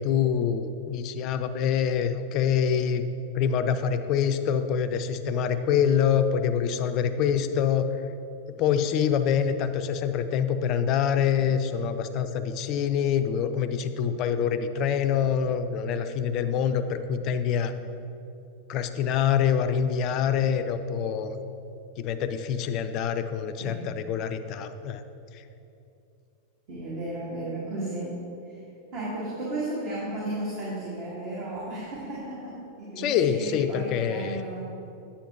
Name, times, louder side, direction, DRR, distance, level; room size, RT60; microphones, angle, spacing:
voice 1, 0.0-3.0 3.3-7.9 8.6-17.7 18.7-21.3 22.0-25.0 33.0-34.4, left 8 dB, 40° left, 9 dB, 0.4 m, -25 dB
voice 2, 23.6-23.9 26.7-28.6 28.9-34.6, right 1 dB, 40° right, -8 dB, 1.8 m, -34 dB
8.7 x 7.1 x 3.0 m, 2.7 s
figure-of-eight pair, 90°, 0 cm